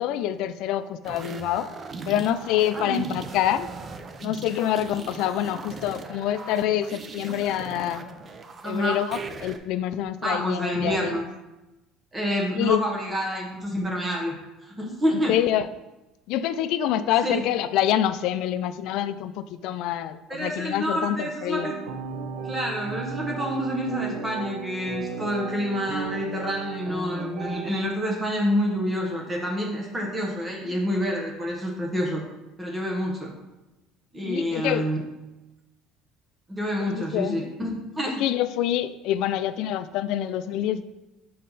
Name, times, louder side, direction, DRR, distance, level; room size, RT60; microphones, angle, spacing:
voice 1, 0.0-1.7 2.1-3.7 4.2-8.0 8.6-11.2 12.5-12.8 15.3-15.7 16.3-21.7 34.3-34.9 36.9-37.4 38.2-40.8, left 11 dB, 70° left, 13 dB, 0.3 m, -26 dB
sound 1, 1.0-9.6, right 4 dB, 35° right, 0.5 m, -39 dB
voice 2, 8.6-9.0 10.2-11.2 12.1-14.3 14.6-15.3 17.2-17.4 20.3-21.7 22.4-32.2 32.6-33.3 34.1-35.0 36.5-38.1, equal, 15° right, -1 dB, 1.1 m, -28 dB
sound 2, 21.6-27.7, right 4 dB, 80° right, 0.8 m, -34 dB
5.5 x 4.2 x 4.0 m, 1.0 s
supercardioid pair, 110°, 0 cm